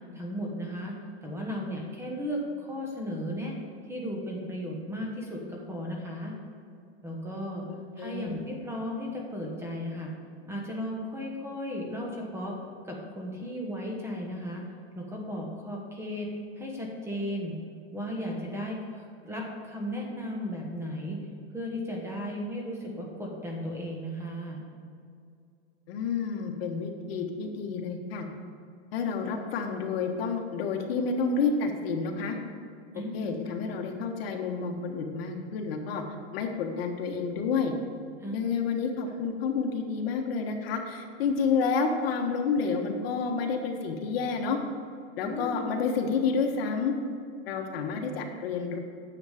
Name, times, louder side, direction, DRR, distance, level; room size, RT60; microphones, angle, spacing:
voice 1, 0.1-0.9 1.2-3.6 3.9-6.3 7.0-7.7 8.0-10.1 10.5-12.6 12.8-14.6 14.9-16.3 16.6-17.6 17.9-21.2 21.5-24.6 32.9-33.3 38.2-38.5 45.2-45.6, equal, 10° right, -1 dB, 1.0 m, -35 dB
voice 2, 7.7-8.4 25.9-28.3 28.9-32.4 32.9-36.0 36.3-37.7 38.3-44.6 45.2-47.0 47.4-48.8, left 5 dB, 60° left, 3 dB, 1.4 m, -29 dB
9.6 x 7.1 x 5.0 m, 2.3 s
supercardioid pair, 160°, 33 cm